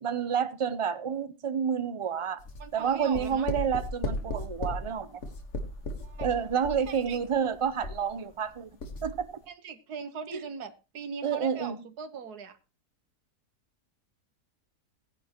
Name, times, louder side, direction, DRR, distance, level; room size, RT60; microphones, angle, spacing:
voice 1, 0.0-2.4 2.7-5.2 6.2-8.7 9.0-9.3 10.3-10.4 11.2-11.8, right 7 dB, 40° right, 0.4 m, -29 dB
sound 1, 2.4-8.5 8.8-9.2, left 1 dB, 50° left, 1.8 m, -36 dB
voice 2, 2.6-3.5 6.0-6.3 6.9-7.2 9.5-12.6, right 6 dB, 70° right, 1.7 m, -40 dB
17.0 x 10.0 x 3.0 m
omnidirectional pair, 1.7 m